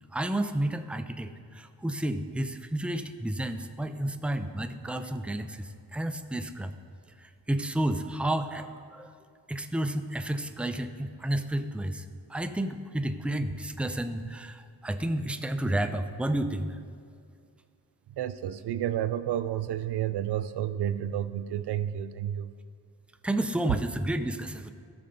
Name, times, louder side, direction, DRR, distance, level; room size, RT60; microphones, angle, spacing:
voice 1, 0.1-6.7 7.2-9.1 9.5-12.0 12.3-16.8 23.2-24.7, right 1 dB, 5° right, 8 dB, 0.6 m, -31 dB
voice 2, 18.2-22.5, right 11 dB, 70° right, 13 dB, 0.5 m, -31 dB
13.5 x 6.7 x 4.0 m, 2.2 s
cardioid pair, 55°, 41 cm